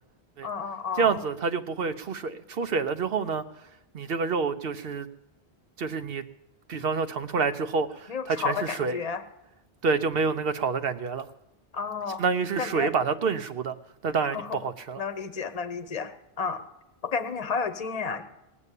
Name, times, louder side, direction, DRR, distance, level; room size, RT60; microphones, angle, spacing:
voice 1, 0.4-1.2 8.1-9.2 11.7-12.2 12.6-12.9 14.2-14.6 15.0-16.6 17.0-18.2, left 5 dB, 40° left, 0.9 m, -31 dB
voice 2, 1.0-3.4 3.9-5.1 5.8-6.2 6.7-9.0 9.8-11.3 12.2-13.8 14.0-15.0, right 5 dB, 65° right, 1.0 m, -28 dB
19.5 x 7.2 x 8.3 m
omnidirectional pair, 1.1 m